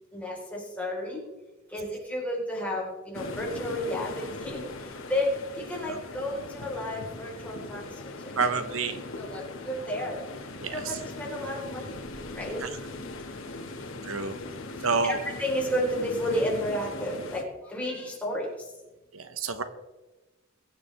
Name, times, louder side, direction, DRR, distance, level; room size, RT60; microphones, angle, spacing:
voice 1, 0.1-1.2 1.7-4.6 5.1-5.3 5.7-7.9 8.4-8.5 9.1-10.2 10.7-11.9 12.4-12.6 15.0-17.4 17.7-18.5, equal, 5° left, -4 dB, 4.4 m, -31 dB
sound 1, 3.1-17.4, left 2 dB, 80° left, 2.0 m, -40 dB
voice 2, 8.4-9.0 10.6-11.0 12.6-12.7 14.0-14.4 14.8-15.2 19.1-19.6, right 4 dB, 85° right, 10 dB, 1.0 m, -29 dB
22.5 x 9.3 x 3.5 m, 1.1 s
head